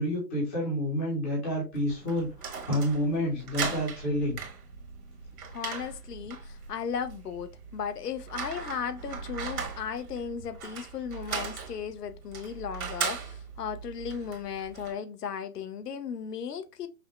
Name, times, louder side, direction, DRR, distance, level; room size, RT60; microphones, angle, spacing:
voice 1, 0.0-2.3 2.7-4.4, equal, 10° left, 0.7 m, -28 dB
sound 1, 1.7-14.9, right 5 dB, 60° right, 1.3 m, -39 dB
voice 2, 5.5-16.9, left 7 dB, 70° left, 0.7 m, -36 dB
5.4 x 2.1 x 3.1 m
hypercardioid pair, 155°, 49 cm